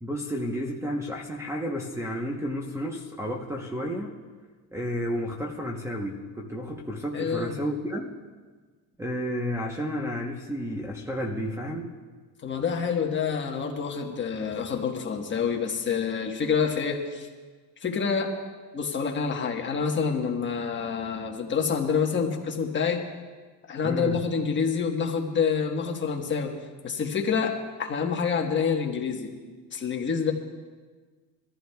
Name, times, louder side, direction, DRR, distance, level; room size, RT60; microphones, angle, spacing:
voice 1, 0.0-4.1 4.7-8.1 9.0-11.9 23.8-24.2, equal, 5° right, 0 dB, 0.9 m, -31 dB
voice 2, 7.1-7.6 12.4-17.3 17.8-18.3 18.7-23.0 23.7-26.5 26.8-29.3 29.7-30.3, left 6 dB, 30° left, 2 dB, 1.3 m, -27 dB
23.5 x 14.5 x 2.3 m, 1.4 s
cardioid pair, 145°, 40 cm